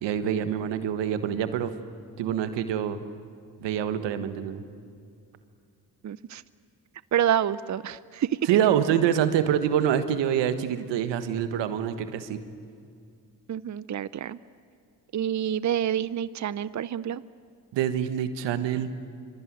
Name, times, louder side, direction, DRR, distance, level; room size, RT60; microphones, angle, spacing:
voice 1, 0.0-1.7 2.2-3.0 3.6-4.6 8.5-12.4 17.7-18.9, right 9 dB, 85° right, 10 dB, 1.5 m, -26 dB
voice 2, 6.0-6.4 7.1-8.4 13.5-14.4 15.1-17.2, right 10 dB, 40° right, 17 dB, 0.7 m, -28 dB
25.5 x 24.5 x 9.4 m, 2.3 s
supercardioid pair, 45°, 42 cm